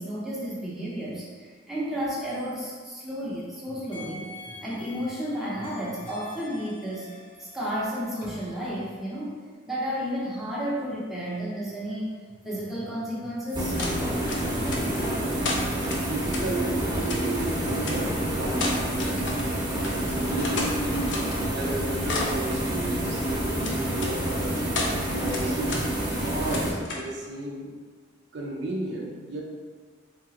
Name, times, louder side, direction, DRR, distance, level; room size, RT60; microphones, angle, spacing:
voice 1, 0.0-7.1 7.4-9.3 9.7-12.1 12.4-13.9, equal, ahead, -8 dB, 0.7 m, -32 dB
sound 1, 2.1-3.5 3.9-9.0, left 1 dB, 30° left, 0.9 m, -46 dB
sound 2, 13.5-26.7, right 1 dB, 25° right, 0.9 m, -28 dB
sound 3, 13.8-14.0 14.3-15.0 15.4-16.4 17.1-17.2 17.8-18.0 18.5-19.5 19.8-19.9 20.2-21.4 21.7-22.4 23.6-24.1 24.6-24.9 25.3-25.8 26.1-27.1, left 2 dB, 65° left, 0.5 m, -32 dB
voice 2, 14.4-15.8 16.1-19.4 20.0-24.6 25.1-27.7 28.3-29.4, right 1 dB, 60° right, -1 dB, 0.5 m, -34 dB
3.6 x 2.9 x 2.8 m, 1.5 s
head